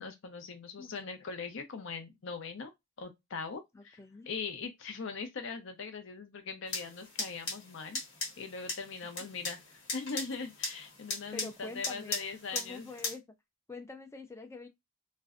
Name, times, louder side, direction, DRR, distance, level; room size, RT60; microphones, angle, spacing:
voice 1, 0.0-2.7 3.0-4.0 4.3-8.0 8.4-12.9, left 4 dB, 65° left, 0.5 m, -41 dB
voice 2, 3.7-4.3 11.3-12.2 12.5-13.2 13.7-14.7, left 3 dB, 15° left, 0.3 m, -45 dB
sound 1, 6.7-13.1, left 3 dB, 85° left, 1.2 m, -39 dB
2.5 x 2.1 x 2.4 m
head